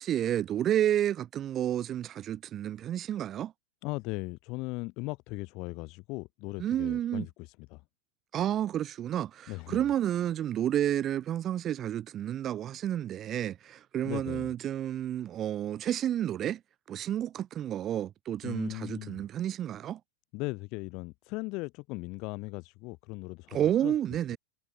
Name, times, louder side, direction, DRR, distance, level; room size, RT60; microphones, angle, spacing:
voice 1, 0.0-3.5 6.6-7.3 8.3-16.6 16.9-20.0 23.5-24.4, right 11 dB, 30° right, 0.4 m, -30 dB
voice 2, 3.8-7.8 9.5-9.9 14.0-14.5 18.4-19.2 20.3-23.9, left 25 dB, 40° left, 0.9 m, -38 dB
figure-of-eight pair, 90°, 0 cm